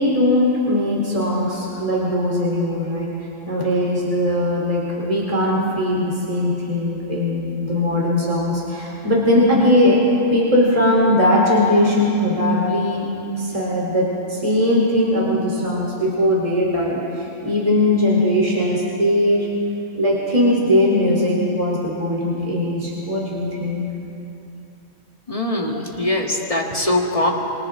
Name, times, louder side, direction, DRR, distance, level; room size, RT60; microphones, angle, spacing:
voice 1, 0.0-3.1 3.5-10.0 10.3-13.1 13.3-19.5 19.9-23.9 25.6-25.8 26.4-26.8, left 1 dB, 25° right, -5 dB, 3.9 m, -19 dB
voice 2, 25.3-27.3, left 1 dB, 25° left, 0 dB, 2.0 m, -22 dB
27.5 x 25.5 x 3.8 m, 2.8 s
omnidirectional pair, 1.5 m